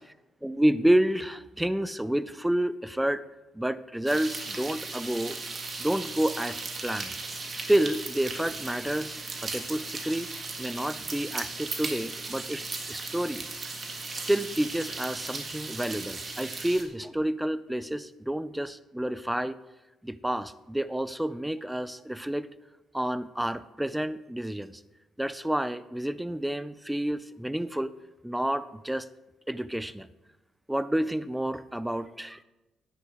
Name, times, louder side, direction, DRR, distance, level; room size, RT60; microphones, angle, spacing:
voice 1, 0.4-3.2 3.5-5.4 5.8-7.1 7.6-10.3 10.6-13.4 14.1-19.6 20.0-22.5 22.9-24.8 25.2-27.9 28.2-29.1 29.5-30.1 30.7-32.4, right 1 dB, 5° right, 16 dB, 0.4 m, -29 dB
sound 1, 4.0-16.8, right 3 dB, 40° right, 1.6 m, -37 dB
10.0 x 9.6 x 3.6 m, 1.0 s
cardioid pair, 90°, 0 cm